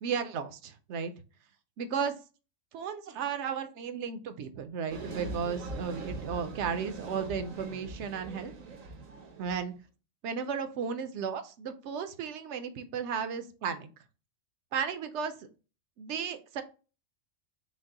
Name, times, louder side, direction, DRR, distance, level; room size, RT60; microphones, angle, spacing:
voice 1, 0.0-1.1 1.8-2.1 2.7-8.5 9.4-9.7 10.2-13.9 14.7-15.3 16.0-16.6, right 6 dB, 65° right, 9 dB, 0.8 m, -34 dB
sound 1, 4.9-9.6, right 3 dB, 80° right, 1.3 m, -41 dB
5.2 x 2.1 x 3.7 m, 0.33 s
omnidirectional pair, 1.4 m